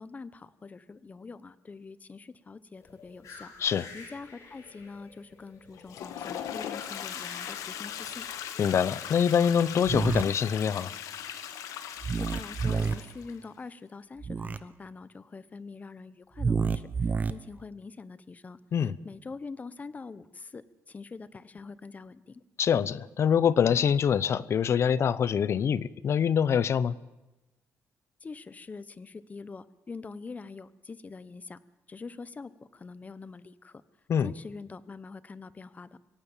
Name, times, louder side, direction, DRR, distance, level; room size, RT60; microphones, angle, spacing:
voice 1, 0.0-3.5 3.9-8.3 12.2-22.4 28.2-31.6 31.9-33.8 34.2-36.0, left 4 dB, 30° left, 16 dB, 0.9 m, -44 dB
sound 1, 2.7-9.3, left 4 dB, 70° left, 6.2 m, -51 dB
Toilet flush, 5.7-13.4, left 9 dB, 90° left, 1.6 m, -39 dB
voice 2, 8.6-10.9 18.7-18.9 22.6-27.0 34.1-34.3, left 7 dB, 55° left, 19 dB, 0.8 m, -25 dB
sound 2, 9.8-10.2 12.0-12.9 14.2-14.6 16.4-17.3, right 5 dB, 30° right, 0.9 m, -28 dB
24.5 x 16.5 x 7.3 m, 1.0 s
cardioid pair, 110°, 6 cm